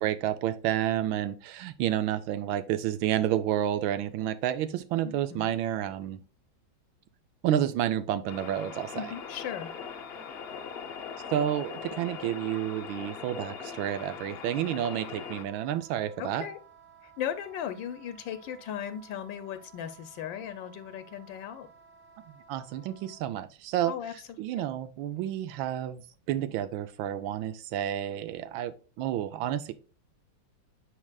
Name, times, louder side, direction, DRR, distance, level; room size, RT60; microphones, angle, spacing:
voice 1, 0.0-6.2 7.4-9.1 11.3-16.5 22.5-23.9 24.4-26.0 26.3-29.7, right 11 dB, 85° right, 12 dB, 1.4 m, -30 dB
voice 2, 5.0-5.5 8.9-9.7 16.2-16.6 17.0-21.7 23.9-24.6, left 9 dB, 80° left, 10 dB, 1.3 m, -37 dB
sound 1, 8.3-15.4, left 6 dB, 60° left, 0.6 m, -41 dB
Wind instrument woodwind instrument, 15.4-23.2, right 7 dB, 60° right, 1.8 m, -56 dB
9.8 x 4.7 x 2.3 m, 0.36 s
omnidirectional pair, 2.1 m